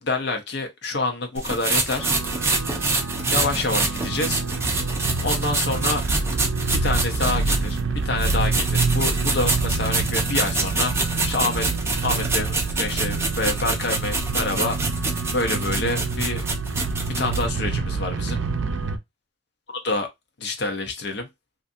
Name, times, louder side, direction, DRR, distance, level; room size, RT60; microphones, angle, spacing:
voice 1, 0.0-2.1 3.3-4.4 5.2-6.1 6.7-11.7 12.0-14.9 15.3-16.4 17.0-18.4 19.7-20.1 20.4-21.3, left 3 dB, 60° left, 0.6 m, -27 dB
sound 1, 1.4-7.8 8.2-17.4, right 3 dB, 15° right, 0.5 m, -26 dB
sound 2, 2.0-19.0, right 3 dB, 70° right, 0.4 m, -27 dB
2.6 x 2.5 x 2.5 m
head